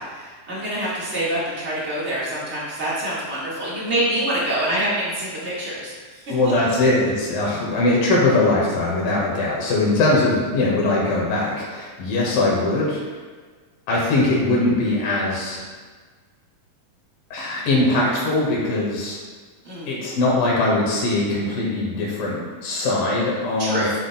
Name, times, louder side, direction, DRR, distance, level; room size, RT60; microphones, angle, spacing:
voice 1, 0.1-6.2 19.6-19.9 23.6-23.9, right 1 dB, 45° right, -8 dB, 0.8 m, -26 dB
voice 2, 6.3-13.0 13.9-15.6 17.3-19.2 19.9-23.9, left 2 dB, 75° left, -4 dB, 3.2 m, -21 dB
9.7 x 6.3 x 2.2 m, 1.5 s
omnidirectional pair, 4.1 m